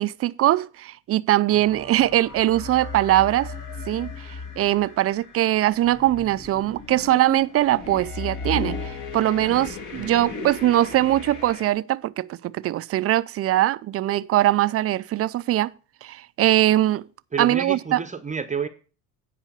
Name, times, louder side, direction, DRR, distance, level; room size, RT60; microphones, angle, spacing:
voice 1, 0.0-3.5 3.9-15.7 16.0-17.0 17.4-18.0, right 14 dB, 40° right, 0.5 m, -22 dB
sound 1, 1.5-11.7, left 4 dB, 50° left, 2.2 m, -36 dB
voice 2, 9.9-10.4 17.3-18.7, right 6 dB, 20° right, 0.8 m, -30 dB
9.9 x 5.1 x 6.8 m
supercardioid pair, 90°, 39 cm